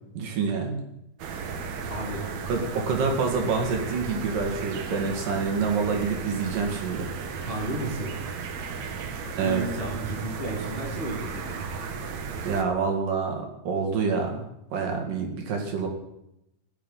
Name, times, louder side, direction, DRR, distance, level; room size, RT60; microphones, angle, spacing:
voice 1, 0.2-0.8 1.8-1.9 2.5-7.1 9.4-9.6 12.5-14.4 14.7-15.9, right 5 dB, 80° right, 2 dB, 3.8 m, -27 dB
sound 1, 1.2-12.6, right 5 dB, 60° right, 2.2 m, -35 dB
voice 2, 1.9-2.3 7.4-8.2 9.4-11.6, right 1 dB, 20° left, -1 dB, 1.8 m, -33 dB
15.5 x 11.0 x 5.5 m, 0.84 s
omnidirectional pair, 3.8 m